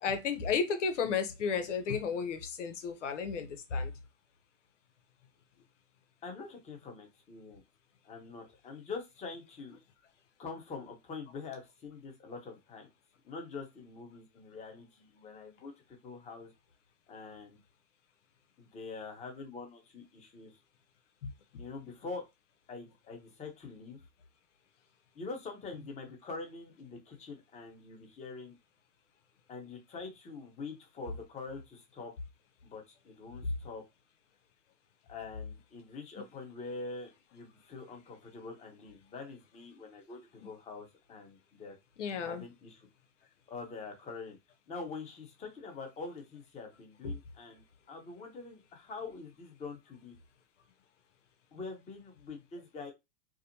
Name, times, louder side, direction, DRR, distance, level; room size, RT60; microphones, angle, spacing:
voice 1, 0.0-3.9 21.2-21.6 42.0-42.4 47.0-47.1, left 6 dB, 90° left, 0.8 m, -33 dB
voice 2, 6.2-7.6 8.0-9.8 10.4-12.9 13.2-16.5 17.1-17.6 18.6-20.5 21.6-22.2 22.7-24.0 25.1-28.6 29.5-32.1 32.6-33.8 35.1-41.7 42.2-42.9 43.5-44.4 44.7-50.1 51.5-52.9, left 4 dB, 20° left, 1.0 m, -45 dB
4.9 x 2.0 x 2.7 m
hypercardioid pair, 135°, 35 cm